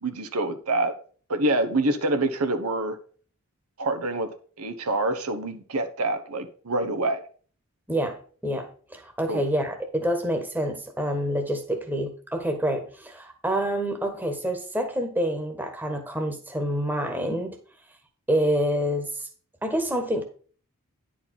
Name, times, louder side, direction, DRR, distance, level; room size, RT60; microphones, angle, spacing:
voice 1, 0.0-0.9 1.3-3.0 3.8-7.2 9.3-9.4, right 2 dB, 85° right, 8 dB, 1.2 m, -26 dB
voice 2, 8.4-17.6 18.3-19.2 19.6-20.2, equal, 10° right, 5 dB, 1.4 m, -27 dB
10.0 x 5.0 x 5.8 m, 0.42 s
head